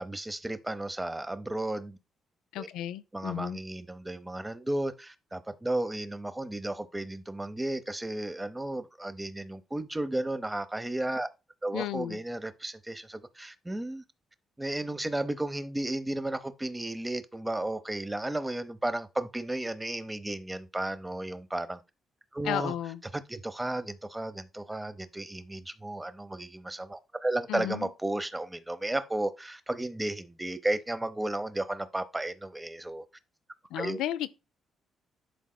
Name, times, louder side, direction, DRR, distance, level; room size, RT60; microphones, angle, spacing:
voice 1, 0.0-2.0 2.6-2.7 3.1-11.3 11.6-14.0 14.6-21.8 22.3-22.7 23.1-33.0 33.8-34.0, right 1 dB, 10° right, 0.7 m, -33 dB
voice 2, 2.5-3.6 11.7-12.2 22.4-23.0 27.5-27.9 33.7-34.3, left 12 dB, 90° left, 0.4 m, -33 dB
11.0 x 4.1 x 2.2 m
cardioid pair, 90°, 0 cm